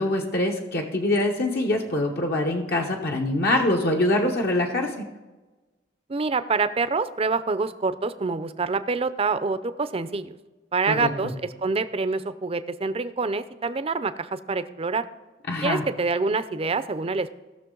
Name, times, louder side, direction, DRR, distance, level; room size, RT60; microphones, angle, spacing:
voice 1, 0.0-5.0 10.9-11.1 15.5-15.8, left 1 dB, 60° left, 1 dB, 1.1 m, -24 dB
voice 2, 6.1-10.4 10.7-15.0 15.6-17.3, right 4 dB, 30° right, 13 dB, 0.5 m, -26 dB
17.0 x 6.5 x 3.9 m, 1.2 s
head